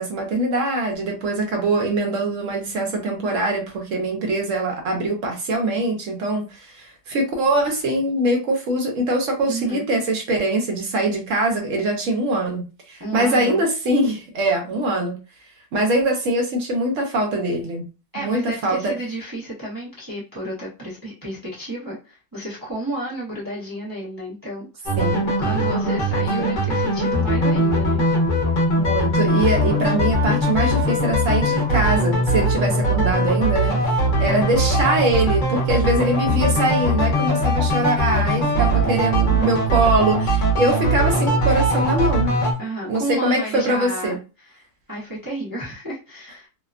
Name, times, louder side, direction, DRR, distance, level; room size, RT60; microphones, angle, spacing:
voice 1, 0.0-15.2 15.7-17.8 18.2-18.9 25.0-25.3 26.4-26.5 28.8-33.8 34.2-42.3 42.9-44.2, right 1 dB, 60° right, 2 dB, 1.0 m, -23 dB
voice 2, 9.5-9.9 13.0-13.6 18.1-25.0 25.4-28.1 34.2-34.6 42.6-46.5, right 1 dB, 25° right, -6 dB, 0.4 m, -32 dB
sound 1, 24.8-42.5, right 1 dB, 40° left, 0.8 m, -20 dB
2.8 x 2.2 x 2.4 m, 0.31 s
omnidirectional pair, 1.7 m